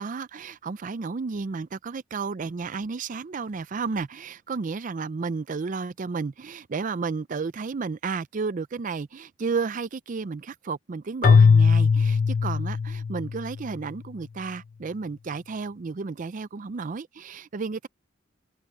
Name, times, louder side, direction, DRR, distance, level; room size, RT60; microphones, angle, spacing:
voice 1, 0.0-17.9, right 4 dB, 40° right, 0.4 m, -32 dB
Keyboard (musical), 11.2-13.5, left 5 dB, 45° left, 0.4 m, -19 dB
open air
head